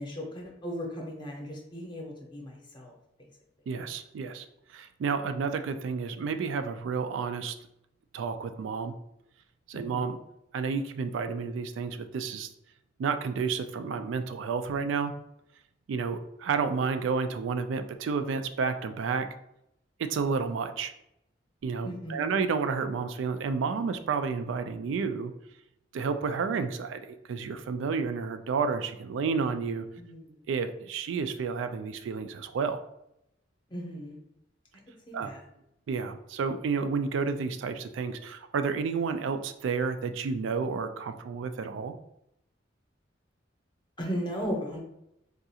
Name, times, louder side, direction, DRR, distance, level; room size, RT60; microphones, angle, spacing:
voice 1, 0.0-2.9 9.7-10.0 21.8-22.4 30.0-30.3 33.7-34.2 35.1-35.4 44.0-44.8, equal, 25° left, -1 dB, 0.7 m, -36 dB
voice 2, 3.7-4.5 4.7-7.6 8.1-8.9 9.7-10.2 10.5-12.5 13.0-15.1 15.9-19.3 20.0-20.9 21.6-25.3 25.9-29.9 30.5-32.8 35.1-35.3 35.9-42.0, right 5 dB, 85° right, 10 dB, 0.3 m, -31 dB
3.7 x 2.3 x 2.7 m, 0.81 s
head